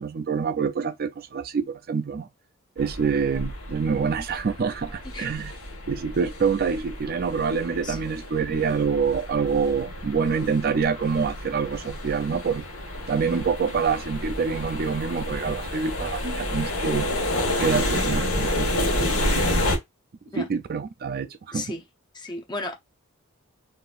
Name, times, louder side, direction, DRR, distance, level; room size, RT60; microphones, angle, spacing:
voice 1, 0.0-2.3 2.8-5.5 5.9-12.6 13.1-17.1 17.6-19.6 20.4-21.7, right 5 dB, 45° right, 0.4 m, -26 dB
sound 1, 2.8-19.8, left 1 dB, 70° left, 1.3 m, -30 dB
voice 2, 21.5-21.8 22.1-22.8, left 2 dB, 20° left, 0.6 m, -34 dB
3.9 x 2.5 x 2.4 m
head